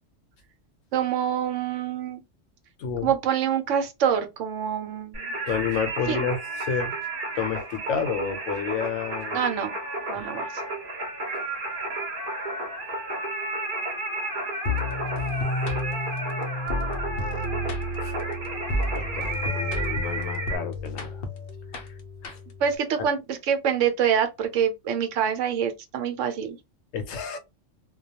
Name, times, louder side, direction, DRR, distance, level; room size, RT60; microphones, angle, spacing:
voice 1, 0.9-2.2 3.0-5.3 6.1-6.2 9.3-9.7 10.1-10.5 22.6-26.6, right 8 dB, 75° right, 0.9 m, -26 dB
voice 2, 2.8-3.1 5.5-6.9 7.3-9.5 10.1-10.2 18.0-18.3 18.9-21.2 22.2-22.4 26.9-27.4, left 6 dB, 80° left, 1.0 m, -30 dB
Singing, 5.1-20.6, right 2 dB, 35° right, 0.8 m, -32 dB
sound 1, 14.7-22.8, left 1 dB, 60° left, 0.7 m, -31 dB
2.3 x 2.2 x 2.7 m
omnidirectional pair, 1.3 m